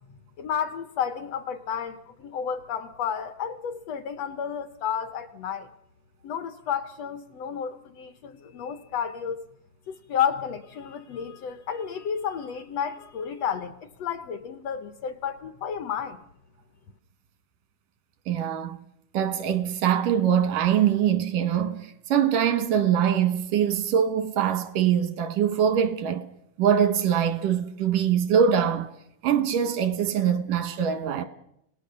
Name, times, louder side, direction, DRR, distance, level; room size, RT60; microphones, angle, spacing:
voice 1, 0.4-5.7 6.2-9.4 9.9-13.7 14.0-16.2, left 8 dB, 65° left, 1.8 m, -31 dB
voice 2, 18.3-18.8 19.1-26.3 26.6-28.9 29.2-31.3, right 8 dB, 90° right, 3.0 m, -23 dB
28.0 x 18.0 x 6.7 m
omnidirectional pair, 3.6 m